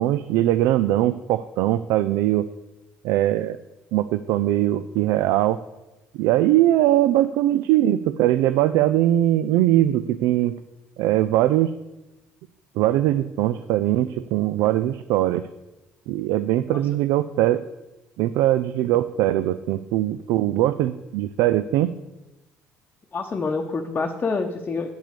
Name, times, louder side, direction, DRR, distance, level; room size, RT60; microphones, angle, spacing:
voice 1, 0.0-2.5 3.0-3.6 3.9-5.6 6.1-10.5 11.0-11.7 12.8-15.4 16.1-17.6 18.2-21.9, right 14 dB, 75° right, 14 dB, 0.3 m, -21 dB
voice 2, 23.1-24.9, left 4 dB, 30° left, 2 dB, 0.9 m, -27 dB
8.4 x 6.2 x 6.8 m, 1.0 s
supercardioid pair, 80°, 5 cm